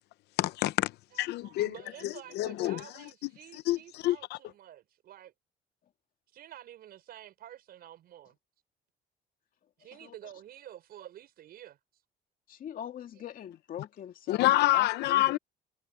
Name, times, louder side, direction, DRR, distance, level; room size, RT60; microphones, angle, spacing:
voice 1, 0.4-0.9 1.2-1.7 2.0-2.8 3.7-4.4 14.3-15.4, left 16 dB, 80° left, 0.8 m, -27 dB
voice 2, 1.1-5.3 6.3-8.4 9.8-11.8, right 12 dB, 65° right, 5.8 m, -50 dB
voice 3, 12.5-15.4, left 10 dB, 55° left, 2.5 m, -42 dB
cardioid pair, 110°, 17 cm